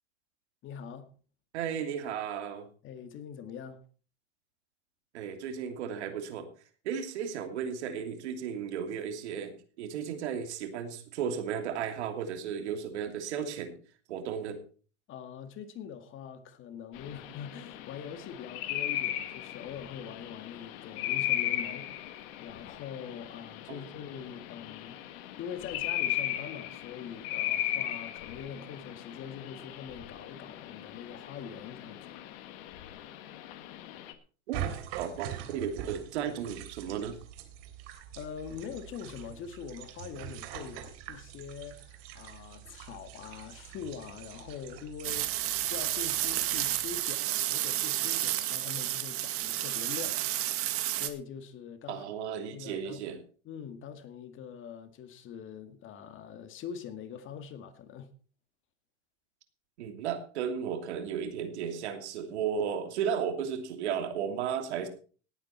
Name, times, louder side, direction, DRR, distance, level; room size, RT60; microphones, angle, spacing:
voice 1, 0.6-1.1 2.8-3.8 15.1-21.9 22.4-25.0 25.4-32.2 38.2-50.3 50.9-52.1 52.5-53.0 53.4-58.1, left 7 dB, 35° left, 2.0 m, -43 dB
voice 2, 1.5-2.7 5.1-6.5 6.8-13.8 14.1-14.6 23.7-23.8 34.5-34.6 35.0-37.2 51.9-53.2 59.8-64.9, right 8 dB, 80° right, 2.9 m, -34 dB
sound 1, 16.9-34.1, left 13 dB, 60° left, 1.9 m, -37 dB
sound 2, 34.5-47.0, right 10 dB, 60° right, 3.1 m, -44 dB
sound 3, 45.0-51.1, right 14 dB, 40° right, 1.7 m, -31 dB
18.0 x 9.1 x 4.4 m
supercardioid pair, 125°, 34 cm